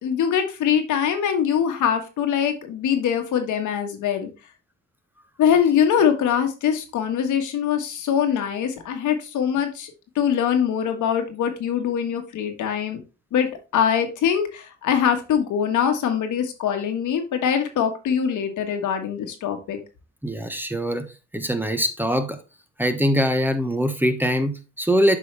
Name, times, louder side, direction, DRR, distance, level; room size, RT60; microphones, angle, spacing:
voice 1, 0.0-4.3 5.4-13.0 13.3-19.8, left 8 dB, 80° left, 1.6 m, -23 dB
voice 2, 20.2-21.1 21.3-22.4 22.8-25.2, equal, 5° right, 1.0 m, -22 dB
7.7 x 5.4 x 3.3 m
cardioid pair, 90°, 30 cm